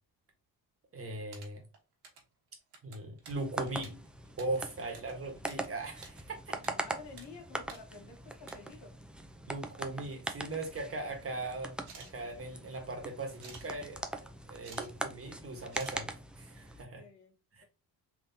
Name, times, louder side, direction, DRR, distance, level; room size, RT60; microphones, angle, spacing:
voice 1, 0.9-1.6 2.8-4.0 4.4-6.6 9.5-16.1 16.4-17.0 17.5-17.6, right 2 dB, 35° right, 1.3 m, -39 dB
sound 1, 1.0-2.3 2.6-5.7 5.9-6.7 7.0-7.3 7.6-7.8 8.2-8.6 9.5-9.6 10.0-10.6 11.8-12.1 13.4-13.7 14.4-14.9 15.1-15.2 15.7-16.0, right 5 dB, 75° right, 1.3 m, -51 dB
sound 2, 3.2-16.8, right 1 dB, 5° right, 0.4 m, -42 dB
voice 2, 6.6-8.9 16.9-17.3, left 4 dB, 85° left, 1.6 m, -51 dB
3.6 x 3.0 x 2.7 m
cardioid pair, 100°, 40 cm